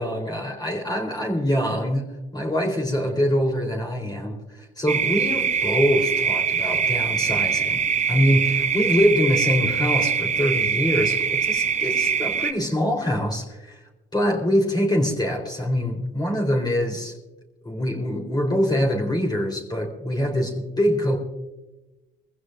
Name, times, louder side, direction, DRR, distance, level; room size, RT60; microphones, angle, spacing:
voice 1, 0.0-2.1 2.3-7.8 8.1-13.8 14.1-17.2 17.6-21.2, equal, 20° left, 1 dB, 3.6 m, -24 dB
sound 1, 4.9-12.5, right 6 dB, 35° right, 0.7 m, -23 dB
23.0 x 15.5 x 2.5 m, 1.0 s
cardioid pair, 80°, 20 cm